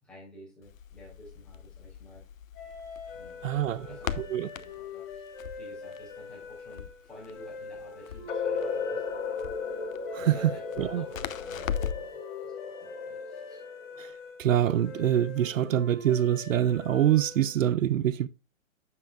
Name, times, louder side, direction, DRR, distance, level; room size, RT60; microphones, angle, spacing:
voice 1, 0.0-2.2 3.1-3.5 3.9-9.0 10.2-13.6, left 1 dB, ahead, 3.5 m, -52 dB
Crackle, 0.6-12.2, left 8 dB, 85° left, 0.9 m, -40 dB
sound 1, 2.5-17.6, left 4 dB, 25° left, 3.5 m, -44 dB
voice 2, 3.4-3.9 4.2-4.5 10.1-10.5 10.8-11.0 14.0-14.1 14.4-18.3, right 11 dB, 75° right, 0.6 m, -25 dB
sound 2, 8.3-14.1, left 5 dB, 65° left, 1.5 m, -35 dB
9.2 x 7.4 x 2.3 m
hypercardioid pair, 160°, 39 cm